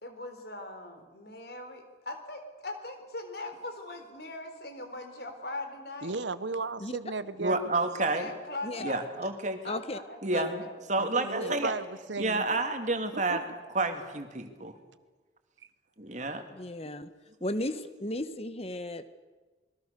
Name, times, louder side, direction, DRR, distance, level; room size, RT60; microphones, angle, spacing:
voice 1, 0.0-6.1 8.0-9.1 9.6-10.7, left 2 dB, 60° left, 6 dB, 4.0 m, -41 dB
voice 2, 6.0-7.7 11.0-12.4 13.1-13.4, right 3 dB, 80° right, 14 dB, 1.1 m, -35 dB
voice 3, 7.4-8.3 8.8-9.6 10.2-10.6 10.9-11.7 12.2-13.4 13.7-14.8 16.0-16.4, right 2 dB, 40° right, 6 dB, 2.5 m, -30 dB
voice 4, 9.6-10.0 10.3-10.4 11.4-11.5 16.5-17.1 17.4-19.2, left 1 dB, 35° left, 11 dB, 1.3 m, -35 dB
28.0 x 22.0 x 6.8 m, 1.3 s
head